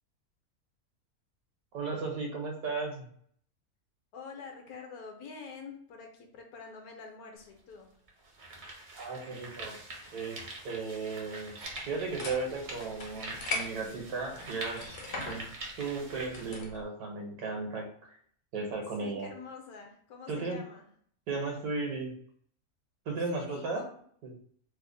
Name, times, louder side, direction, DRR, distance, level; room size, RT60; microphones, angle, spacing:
voice 1, 1.7-3.1 8.9-9.8 10.1-11.5 11.8-18.2 18.5-19.3 20.3-20.6 21.3-22.1 23.1-23.8 24.2-24.3, right 4 dB, 80° right, 1 dB, 1.3 m, -35 dB
voice 2, 4.1-7.9 19.0-20.8 23.3-23.9, left 5 dB, 75° left, 3 dB, 1.2 m, -46 dB
sound 1, 7.4-7.5 8.1-16.6, right 2 dB, 50° right, 0.6 m, -45 dB
sound 2, 11.6-16.8, left 3 dB, 55° left, 0.6 m, -41 dB
3.2 x 2.0 x 3.8 m, 0.62 s
omnidirectional pair, 1.6 m